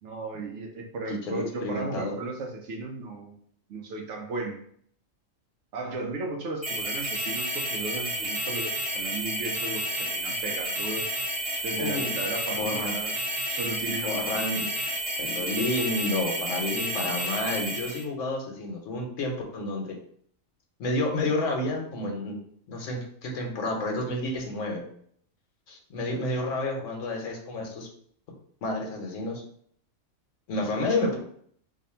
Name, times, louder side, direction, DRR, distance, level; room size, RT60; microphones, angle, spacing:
voice 1, 0.0-3.3 3.7-4.6 5.7-11.1 11.6-13.2 13.5-14.3, right 3 dB, 65° right, 2 dB, 0.9 m, -35 dB
voice 2, 1.1-2.2 11.8-12.1 12.6-12.9 14.0-14.6 15.2-20.0 20.8-22.4 22.7-24.9 25.7-27.9 28.6-29.4 30.5-31.2, left 2 dB, 70° left, 1 dB, 1.1 m, -30 dB
sound 1, 6.6-18.0, right 1 dB, 30° right, 1.1 m, -31 dB
2.7 x 2.5 x 4.2 m, 0.63 s
omnidirectional pair, 1.4 m